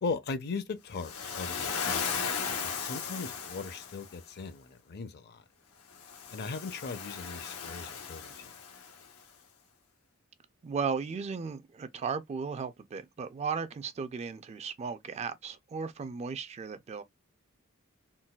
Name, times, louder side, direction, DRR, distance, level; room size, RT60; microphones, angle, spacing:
voice 1, 0.0-5.4 6.3-8.5, left 4 dB, 50° left, 0.5 m, -38 dB
Waves surf, 1.0-4.2 6.0-9.0, left 6 dB, 90° left, 0.8 m, -36 dB
voice 2, 10.6-17.0, right 5 dB, 30° right, 0.3 m, -35 dB
3.8 x 2.2 x 2.2 m
head